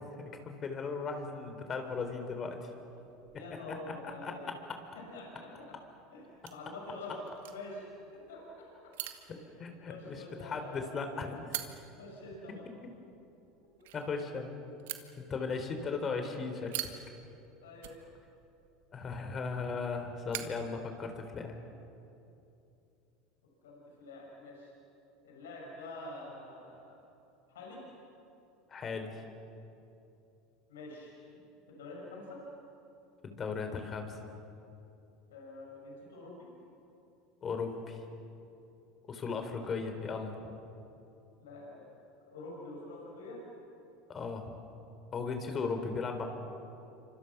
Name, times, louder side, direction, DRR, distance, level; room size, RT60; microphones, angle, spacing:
voice 1, 0.0-2.7 4.2-4.3 9.6-11.6 13.9-14.5 15.2-16.7 18.9-21.5 28.7-29.2 33.2-34.2 37.4-38.0 39.1-40.5 44.1-44.5 45.1-46.2, left 4 dB, 35° left, 6 dB, 3.9 m, -37 dB
sound 1, 1.8-21.5, right 13 dB, 75° right, 1.8 m, -48 dB
voice 2, 3.3-4.5 4.9-5.8 6.1-8.9 9.3-9.4 9.9-10.8 12.0-12.6 17.6-17.9 23.6-24.7 25.2-27.0 27.5-27.8 30.7-32.4 35.3-36.5 39.3-39.8 41.4-41.9 42.3-43.4 45.4-45.6, left 2 dB, 85° left, -2 dB, 6.6 m, -47 dB
29.0 x 26.0 x 6.1 m, 2.8 s
hypercardioid pair, 85°, 0 cm